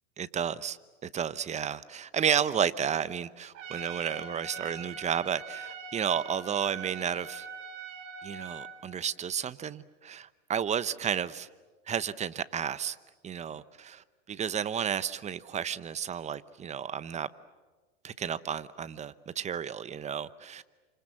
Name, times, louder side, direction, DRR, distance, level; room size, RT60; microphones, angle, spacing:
voice 1, 0.2-7.5 8.2-11.5 11.9-13.0 13.2-17.3 18.0-20.6, right 8 dB, 20° right, 16 dB, 0.9 m, -32 dB
Trumpet, 3.5-8.8, right 5 dB, 45° right, 6.2 m, -42 dB
29.0 x 26.5 x 7.6 m, 1.3 s
hypercardioid pair, 125°, 38 cm